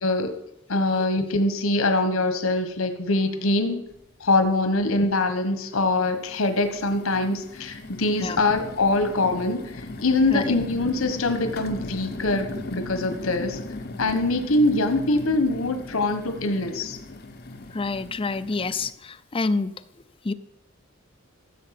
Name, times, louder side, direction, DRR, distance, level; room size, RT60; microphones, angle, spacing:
voice 1, 0.0-0.3 0.7-3.8 4.2-13.6 14.0-17.0, left 2 dB, 90° left, 8 dB, 1.3 m, -23 dB
sound 1, 3.9-4.0 4.4-5.1 5.7-18.9, left 2 dB, 50° left, 0.9 m, -38 dB
voice 2, 17.7-19.7 20.2-20.3, left 3 dB, 25° left, 11 dB, 0.5 m, -27 dB
14.5 x 7.6 x 5.9 m, 0.82 s
head